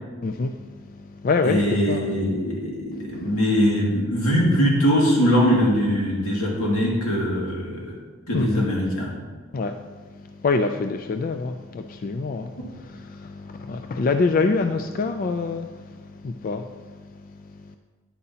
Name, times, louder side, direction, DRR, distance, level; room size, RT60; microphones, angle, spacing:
voice 1, 0.2-1.6 1.9-2.1 3.1-3.4 8.3-8.7 9.5-17.8, left 4 dB, 40° left, 6 dB, 0.3 m, -26 dB
voice 2, 1.4-7.9 8.3-9.1 12.6-12.7, equal, 90° left, -3 dB, 2.2 m, -22 dB
9.7 x 9.6 x 2.8 m, 1.4 s
head